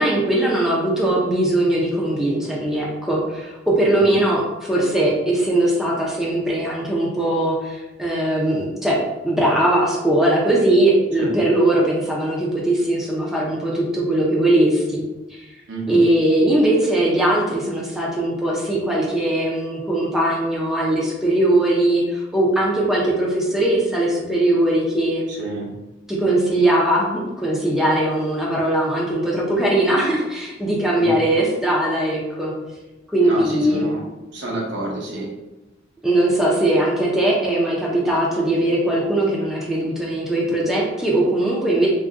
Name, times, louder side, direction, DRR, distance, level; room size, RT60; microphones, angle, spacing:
voice 1, 0.0-9.0 9.2-15.0 15.3-15.5 15.9-25.2 26.1-32.5 33.1-33.9 36.0-41.9, right 1 dB, ahead, -5 dB, 0.4 m, -20 dB
voice 2, 15.7-16.0 25.3-25.7 31.0-31.2 33.2-34.0 34.3-35.3, right 2 dB, 70° right, -3 dB, 0.8 m, -29 dB
2.5 x 2.1 x 3.5 m, 1.0 s
head